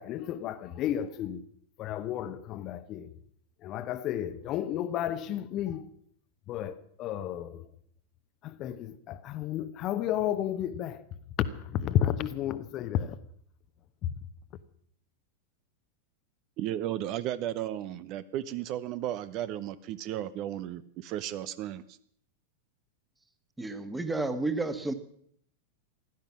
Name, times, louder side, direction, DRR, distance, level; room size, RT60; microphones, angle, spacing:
voice 1, 0.0-1.4 1.8-3.1 3.6-5.8 6.5-7.6 8.4-11.0 11.4-13.2, left 11 dB, 35° left, 1.0 m, -32 dB
voice 2, 16.6-22.0, right 12 dB, 40° right, 0.7 m, -34 dB
voice 3, 23.6-24.9, right 2 dB, 10° right, 1.6 m, -31 dB
16.0 x 12.0 x 7.4 m
figure-of-eight pair, 90°, 0 cm